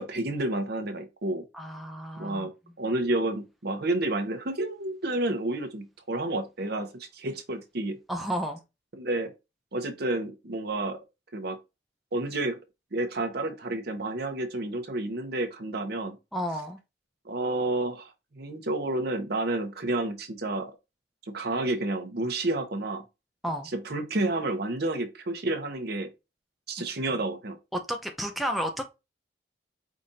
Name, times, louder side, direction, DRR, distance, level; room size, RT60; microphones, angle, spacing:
voice 1, 0.0-1.4 2.2-2.5 2.8-8.0 8.9-9.3 9.7-11.0 11.3-11.6 12.1-12.6 12.9-16.2 17.2-20.7 21.3-23.0 23.7-26.1 26.7-27.6, right 2 dB, 60° right, 1.0 m, -30 dB
voice 2, 1.5-2.5 8.1-8.6 16.3-16.8 23.4-23.7 27.7-28.8, equal, ahead, 0.5 m, -31 dB
5.0 x 2.5 x 4.1 m
head